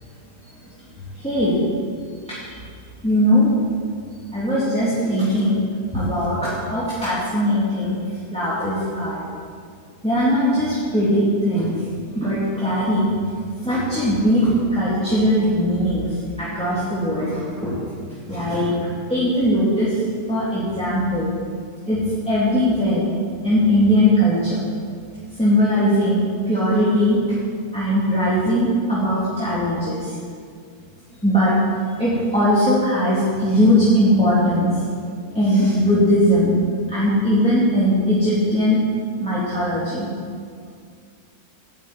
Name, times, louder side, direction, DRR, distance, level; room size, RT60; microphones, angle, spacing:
voice 1, 1.2-1.6 2.3-2.4 3.0-3.5 4.3-5.6 5.9-8.0 8.3-9.2 10.0-11.7 12.1-13.1 13.6-16.1 16.4-17.8 18.3-18.7 19.1-20.0 20.3-21.3 21.9-23.1 23.4-24.6 25.4-27.2 27.7-30.1 31.2-31.6 32.0-34.8 35.3-36.6 36.9-38.8 39.2-40.1, equal, 5° left, -10 dB, 2.7 m, -19 dB
11.0 x 7.7 x 9.3 m, 2.2 s
omnidirectional pair, 1.6 m